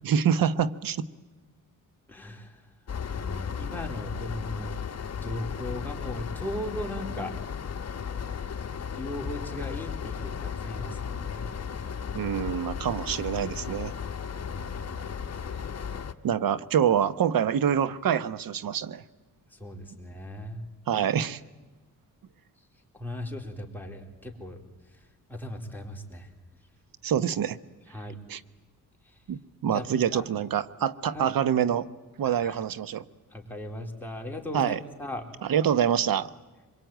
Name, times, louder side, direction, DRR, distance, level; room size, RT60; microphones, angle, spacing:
voice 1, 0.0-1.1 12.1-13.9 16.2-19.0 20.9-21.4 27.0-27.6 28.3-28.4 29.3-31.9 32.2-33.0 34.5-34.8 35.4-36.3, right 8 dB, 75° right, 15 dB, 1.1 m, -26 dB
voice 2, 2.1-2.6 3.1-4.7 5.1-7.3 8.7-11.5 14.4-15.2 19.5-20.6 23.0-24.6 25.3-26.3 27.9-28.2 29.7-30.2 31.1-31.3 32.2-32.6 33.3-35.2, left 1 dB, 5° left, 0 dB, 4.0 m, -38 dB
sound 1, 2.9-16.1, left 7 dB, 45° left, 1.3 m, -35 dB
25.5 x 23.0 x 9.2 m, 1.3 s
cardioid pair, 115°, 35 cm